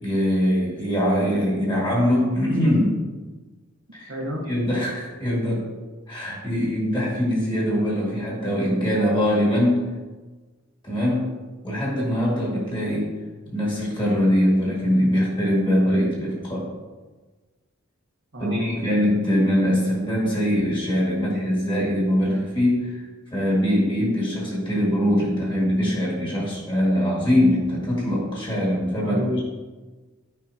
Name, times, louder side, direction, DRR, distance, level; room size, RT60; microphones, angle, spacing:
voice 1, 0.0-3.0 3.9-4.1 4.5-5.7 6.1-9.9 10.8-11.3 11.6-13.1 13.5-16.7 18.4-23.0 23.3-29.2, equal, 20° left, -4 dB, 2.0 m, -22 dB
voice 2, 4.1-4.4 18.3-18.9 29.0-29.4, equal, 70° right, -1 dB, 1.2 m, -29 dB
9.2 x 5.4 x 2.8 m, 1.3 s
head